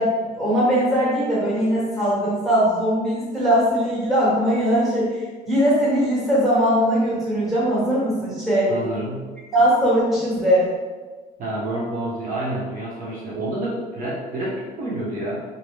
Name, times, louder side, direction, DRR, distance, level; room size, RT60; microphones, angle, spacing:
voice 1, 0.0-8.7 9.5-10.7, equal, ahead, -9 dB, 1.3 m, -20 dB
voice 2, 8.7-9.3 11.4-15.4, right 1 dB, 50° right, -6 dB, 0.7 m, -28 dB
2.5 x 2.0 x 3.2 m, 1.3 s
cardioid pair, 110°, 17 cm